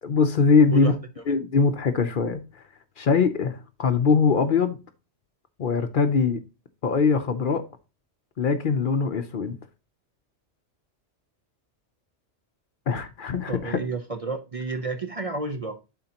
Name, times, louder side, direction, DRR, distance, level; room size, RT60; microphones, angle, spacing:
voice 1, 0.0-1.0 1.3-2.4 3.0-4.8 5.6-6.4 6.8-7.6 8.4-9.6 12.9-13.8, left 5 dB, 55° left, 0.7 m, -22 dB
voice 2, 13.5-15.8, right 3 dB, 40° right, 0.6 m, -31 dB
11.5 x 4.3 x 2.8 m
omnidirectional pair, 1.2 m